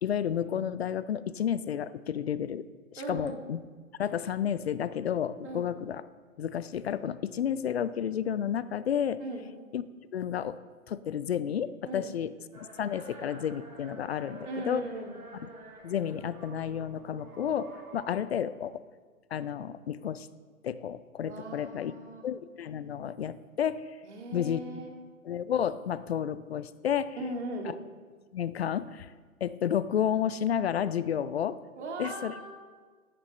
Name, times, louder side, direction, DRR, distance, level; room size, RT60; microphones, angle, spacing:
voice 1, 0.0-2.6 2.9-3.6 4.0-6.0 6.4-9.2 9.7-9.8 10.1-10.6 10.9-14.8 15.8-18.8 19.3-20.3 20.6-21.9 22.2-23.9 24.3-24.6 25.2-27.2 28.3-29.1 29.4-31.6 32.0-32.3, left 9 dB, 50° left, 16 dB, 0.5 m, -31 dB
voice 2, 3.0-3.4 5.4-5.7 9.2-9.4 11.9-12.1 14.4-15.1 21.2-22.3 24.0-24.9 27.1-27.7 31.7-32.5, right 1 dB, 55° right, 1 dB, 2.3 m, -38 dB
sound 1, 12.5-18.2, right 3 dB, 85° right, 1.8 m, -49 dB
14.0 x 9.9 x 3.1 m, 1.5 s
figure-of-eight pair, 130°, 42 cm